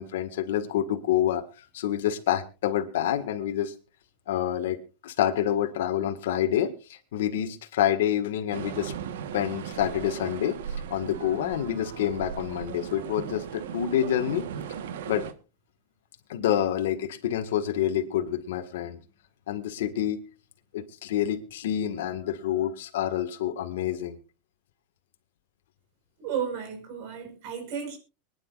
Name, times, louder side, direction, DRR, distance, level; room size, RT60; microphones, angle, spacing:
voice 1, 0.0-3.7 4.3-8.9 9.3-10.6 10.9-14.4 15.1-15.3 16.3-19.0 19.5-20.2 20.7-24.2, left 10 dB, 85° left, 1.6 m, -27 dB
sound 1, 8.5-15.3, right 8 dB, 85° right, 1.2 m, -37 dB
voice 2, 26.2-28.0, right 7 dB, 60° right, 4.9 m, -33 dB
24.5 x 10.5 x 2.5 m
supercardioid pair, 140°, 0 cm